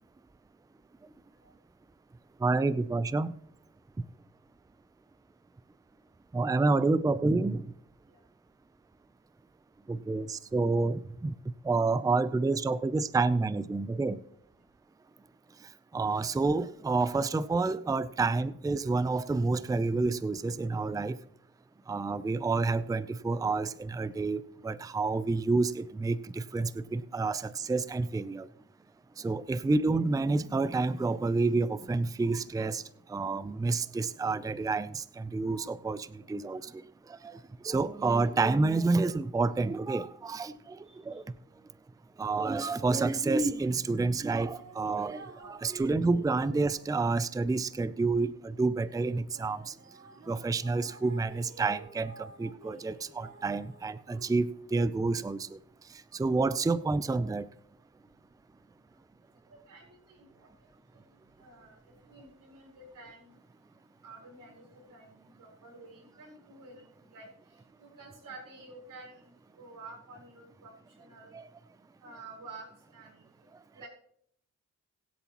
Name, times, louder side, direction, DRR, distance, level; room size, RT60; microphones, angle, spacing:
voice 1, 2.4-3.3 6.3-7.6 9.9-11.3 11.6-14.2 15.9-21.2 21.9-28.5 29.2-32.8 33.1-36.7 37.2-37.4 37.6-40.8 41.1-41.2 42.2-49.7 50.3-55.6 56.1-57.5 71.3-71.4, right 3 dB, 10° right, 15 dB, 0.5 m, -29 dB
voice 2, 40.8-41.2 59.5-60.5 60.9-61.0 61.4-63.3 64.0-67.3 67.8-69.3 69.5-71.3 72.0-73.3 73.7-73.9, right 3 dB, 90° right, -1 dB, 4.5 m, -50 dB
sound 1, 44.6-48.6 49.0-55.5, right 2 dB, 55° right, 3.4 m, -53 dB
23.0 x 8.0 x 3.0 m, 0.68 s
cardioid pair, 70°, 31 cm